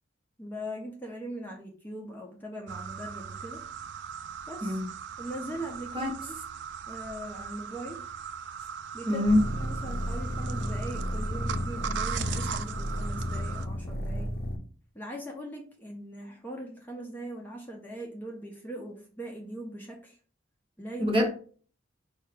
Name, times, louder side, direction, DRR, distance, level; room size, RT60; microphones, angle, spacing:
voice 1, 0.4-3.7 4.5-4.8 5.2-6.4 6.9-8.0 8.9-9.2 9.6-14.3 14.9-20.2 20.8-21.2, equal, 10° left, 0.5 m, -40 dB
sound 1, 2.7-13.7, right 7 dB, 60° right, 0.3 m, -39 dB
voice 2, 9.1-9.5 21.0-21.3, left 1 dB, 25° right, 0.9 m, -24 dB
sound 2, 9.3-14.6, equal, 50° left, 0.6 m, -33 dB
4.8 x 2.3 x 4.7 m
head